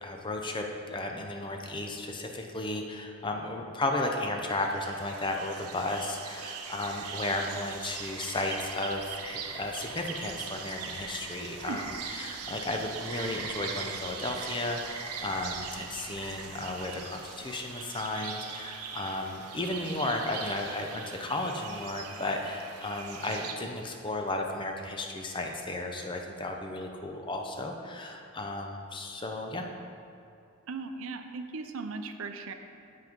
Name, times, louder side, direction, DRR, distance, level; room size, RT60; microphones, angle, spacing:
voice 1, 0.0-11.8 12.1-29.6, left 2 dB, 20° left, 2 dB, 0.6 m, -34 dB
sound 1, 4.5-23.5, right 6 dB, 90° right, 0.7 m, -41 dB
voice 2, 30.7-32.5, right 4 dB, 60° right, 7 dB, 0.5 m, -38 dB
7.7 x 5.9 x 5.2 m, 2.6 s
head